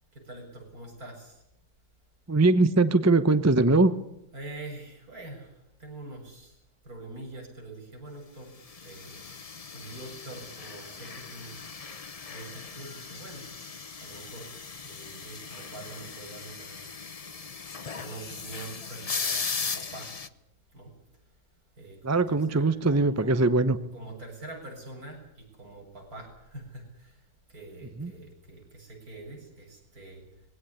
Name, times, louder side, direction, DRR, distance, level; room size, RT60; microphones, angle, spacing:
voice 1, 0.1-1.4 4.3-8.6 8.8-9.2 9.7-11.8 12.3-13.5 14.0-14.5 14.8-16.9 18.0-20.2 20.7-20.9 21.8-23.3 23.9-27.2 27.5-30.2, right 2 dB, 50° right, 1 dB, 7.8 m, -44 dB
voice 2, 2.3-3.9 22.0-23.8 28.0-28.1, right 2 dB, 20° right, 12 dB, 0.4 m, -21 dB
sound 1, 8.7-20.3, left 5 dB, 50° left, 0.4 m, -38 dB
20.5 x 17.0 x 10.0 m, 0.83 s
omnidirectional pair, 2.0 m